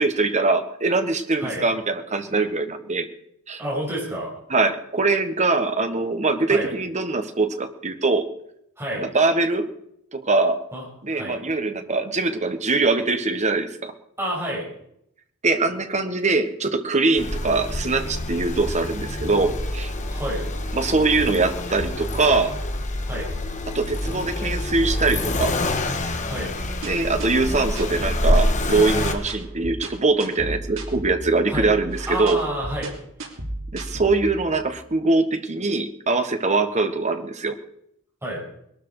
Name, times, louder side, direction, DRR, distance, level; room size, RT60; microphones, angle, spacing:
voice 1, 0.0-3.1 3.5-3.6 4.5-8.3 8.9-9.7 10.1-10.6 11.0-13.9 15.4-19.9 20.7-22.6 23.7-25.5 26.8-32.4 33.7-37.6, right 3 dB, 35° right, 8 dB, 1.4 m, -22 dB
voice 2, 3.6-4.3 6.5-6.7 8.8-9.0 10.7-10.8 11.1-11.4 14.2-14.7 20.0-20.4 23.0-23.3 26.2-26.5 31.5-31.7 32.1-32.9 38.2-38.4, right 1 dB, 10° right, -4 dB, 6.7 m, -29 dB
Accelerating revving vroom, 17.2-29.1, left 1 dB, 35° left, 1.5 m, -26 dB
sound 1, 26.3-34.5, right 1 dB, 70° right, 3.3 m, -34 dB
21.0 x 12.5 x 4.9 m, 0.74 s
head